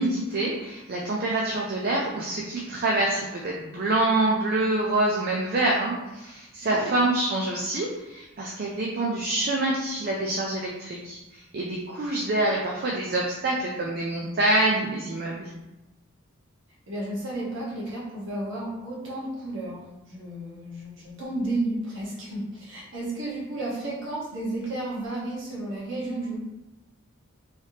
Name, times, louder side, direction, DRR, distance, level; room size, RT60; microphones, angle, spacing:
voice 1, 0.0-15.5, right 2 dB, 45° right, -2 dB, 0.4 m, -26 dB
voice 2, 6.6-7.0 16.9-26.4, right 1 dB, 60° right, -6 dB, 1.2 m, -32 dB
3.2 x 3.2 x 2.8 m, 0.99 s
head